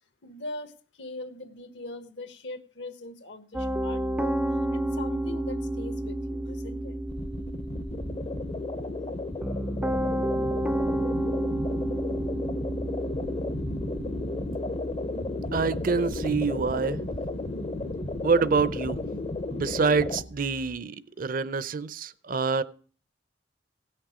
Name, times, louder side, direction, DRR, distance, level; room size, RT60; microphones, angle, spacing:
voice 1, 0.2-4.4 4.7-7.0, left 2 dB, 75° left, 1.4 m, -41 dB
Piano, 3.5-20.7, right 1 dB, 5° right, 0.5 m, -32 dB
sound 1, 7.1-20.2, left 2 dB, 35° left, 0.6 m, -34 dB
voice 2, 15.5-17.0 18.2-19.1 19.5-22.6, right 4 dB, 50° right, 0.6 m, -26 dB
16.5 x 6.5 x 4.9 m
head